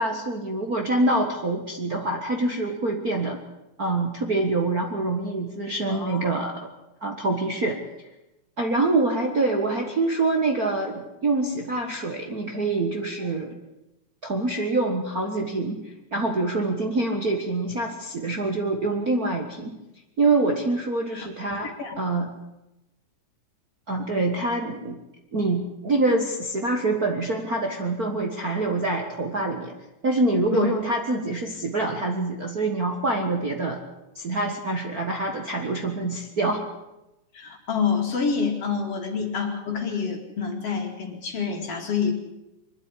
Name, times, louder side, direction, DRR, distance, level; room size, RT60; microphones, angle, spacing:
voice 1, 0.0-3.4 3.8-6.7 7.0-7.8 8.6-13.6 14.2-15.8 16.1-19.8 20.2-22.3 23.9-25.0 25.3-29.7 30.0-33.8 34.1-36.6, right 2 dB, 40° right, 1 dB, 1.6 m, -25 dB
voice 2, 5.9-6.3 21.1-21.3 21.6-22.0 30.5-30.7 37.3-42.1, left 6 dB, 50° left, 3 dB, 3.3 m, -27 dB
23.0 x 12.5 x 9.9 m, 0.95 s
omnidirectional pair, 3.6 m